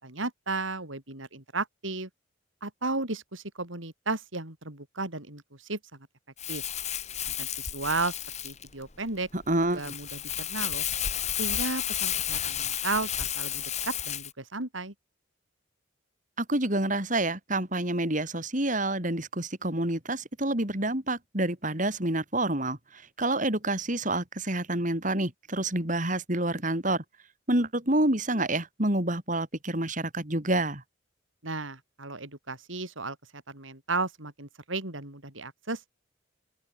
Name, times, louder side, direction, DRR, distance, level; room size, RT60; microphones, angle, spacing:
voice 1, 0.0-2.1 2.6-5.8 6.5-6.6 7.3-8.1 8.4-9.3 9.7-10.8 11.4-14.9 31.4-35.8, right 3 dB, 85° right, 5.7 m, -34 dB
Crumpling crinkling, 6.4-14.3, left 10 dB, 35° left, 2.9 m, -32 dB
voice 2, 9.3-9.9 16.4-27.0 27.5-30.8, right 1 dB, 40° right, 4.8 m, -28 dB
open air
head